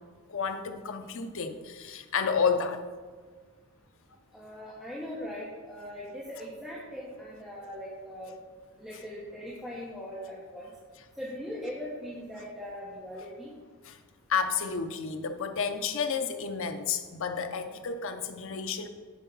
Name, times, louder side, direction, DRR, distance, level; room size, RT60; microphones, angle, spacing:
voice 1, 0.3-2.8 13.8-14.0 14.3-18.9, left 6 dB, 60° left, 7 dB, 0.7 m, -31 dB
voice 2, 4.3-8.3 8.8-10.7 11.2-13.5, equal, ahead, -7 dB, 1.2 m, -40 dB
9.5 x 4.6 x 5.5 m, 1.5 s
head